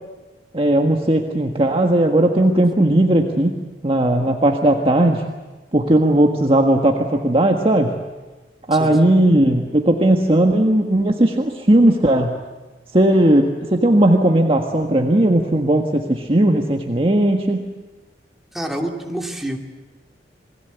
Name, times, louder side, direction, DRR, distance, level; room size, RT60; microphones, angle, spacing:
voice 1, 0.5-3.6 3.8-5.2 5.7-7.9 8.7-12.4 12.9-17.7, right 1 dB, 30° right, 2 dB, 1.6 m, -17 dB
voice 2, 8.8-9.1 18.5-19.6, right 1 dB, ahead, 1 dB, 2.7 m, -27 dB
28.5 x 21.0 x 8.1 m, 1.2 s
head